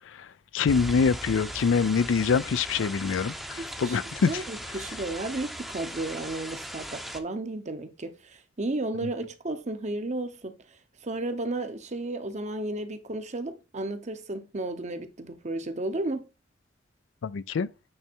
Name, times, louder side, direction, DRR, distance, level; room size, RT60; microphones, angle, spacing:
voice 1, 0.5-4.4 17.2-17.7, left 5 dB, 70° left, 0.4 m, -25 dB
sound 1, 0.7-7.2, equal, ahead, 0.7 m, -38 dB
voice 2, 3.6-4.0 4.3-10.8 11.0-16.2, right 2 dB, 35° right, 0.8 m, -33 dB
8.8 x 3.4 x 4.4 m
head